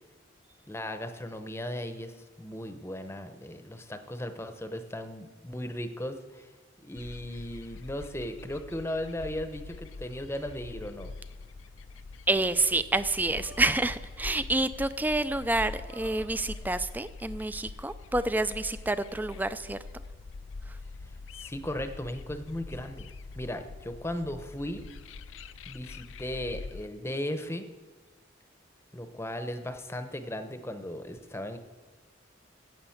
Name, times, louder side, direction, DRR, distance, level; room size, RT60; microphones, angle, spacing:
voice 1, 0.7-6.5 6.8-11.1 21.4-23.1 23.4-24.8 25.7-27.7 28.9-31.6, left 1 dB, 15° left, 8 dB, 0.8 m, -36 dB
sound 1, 7.0-26.9, left 3 dB, 80° left, 0.5 m, -44 dB
voice 2, 12.3-19.8 20.7-20.8, right 2 dB, 10° right, 14 dB, 0.4 m, -28 dB
sound 2, 13.2-14.3 15.6-16.9 17.4-17.8 18.0-18.9 19.6-19.7, right 1 dB, 80° right, 2.1 m, -52 dB
10.0 x 7.9 x 7.9 m, 1.3 s
head